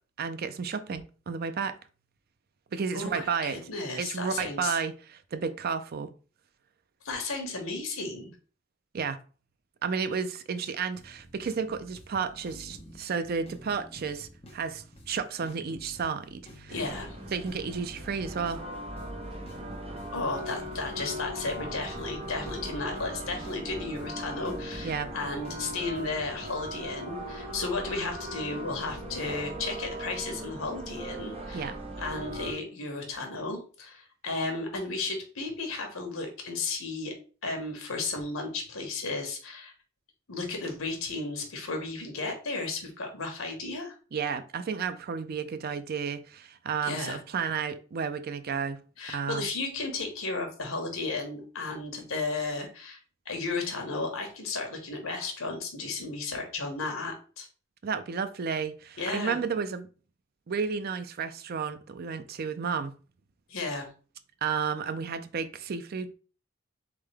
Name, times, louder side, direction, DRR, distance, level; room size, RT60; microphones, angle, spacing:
voice 1, 0.2-1.7 2.7-3.6 4.0-6.1 8.9-9.2 9.8-16.8 17.3-18.6 24.8-25.1 31.5-31.7 44.1-48.8 49.1-49.5 57.8-59.9 60.5-62.9 64.4-66.1, right 6 dB, 45° right, 0.4 m, -32 dB
voice 2, 2.9-4.8 7.0-8.3 16.7-17.1 20.1-31.7 32.0-37.1 37.4-39.7 40.3-43.9 46.8-47.2 49.0-53.0 53.2-57.5 59.0-59.4 63.5-63.9, left 3 dB, 80° left, 1.2 m, -34 dB
sound 1, 11.0-26.9, equal, 30° left, 1.1 m, -50 dB
sound 2, 16.7-32.5, right 1 dB, 30° right, 0.8 m, -39 dB
3.8 x 3.7 x 3.3 m
head